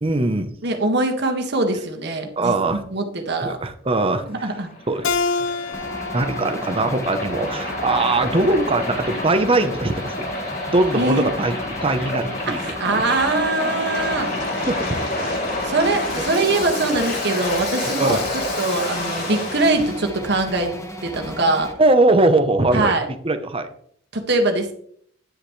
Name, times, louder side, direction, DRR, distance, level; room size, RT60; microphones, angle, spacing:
voice 1, 0.0-0.5 2.4-2.8 3.4-4.5 4.9-5.1 6.1-10.3 10.7-12.6 12.9-13.0 14.7-15.0 17.9-18.2 21.8-22.9 23.2-23.7, right 2 dB, 30° right, 8 dB, 0.8 m, -20 dB
voice 2, 0.6-3.6 4.3-4.7 10.9-11.3 12.6-14.3 15.6-18.2 18.6-20.7 21.0-21.7 22.7-23.1 24.1-24.7, right 2 dB, 60° right, 4 dB, 1.8 m, -22 dB
Waves surf, 4.2-20.0, left 2 dB, 60° left, 4.2 m, -28 dB
Keyboard (musical), 5.0-8.3, left 4 dB, 90° left, 0.6 m, -28 dB
sound 1, 5.7-21.7, equal, 15° left, 1.5 m, -35 dB
10.0 x 10.0 x 3.2 m, 0.62 s
head